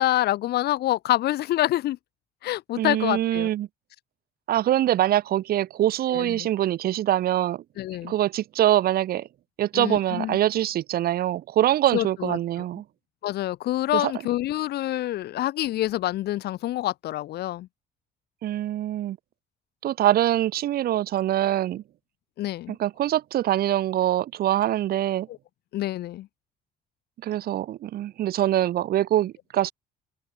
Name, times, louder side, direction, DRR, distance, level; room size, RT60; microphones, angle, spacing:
voice 1, 0.0-2.0 2.4-3.5 6.1-6.5 7.8-8.1 9.7-10.4 11.9-12.4 13.2-17.7 22.4-22.8 25.3-25.4 25.7-26.3, left 14 dB, 70° left, 3.4 m, -26 dB
voice 2, 2.8-3.7 4.5-7.6 8.0-9.3 9.6-12.8 13.9-14.1 18.4-19.2 19.8-21.8 22.8-25.3 27.2-29.7, right 13 dB, 65° right, 1.8 m, -24 dB
open air
cardioid pair, 110°, 17 cm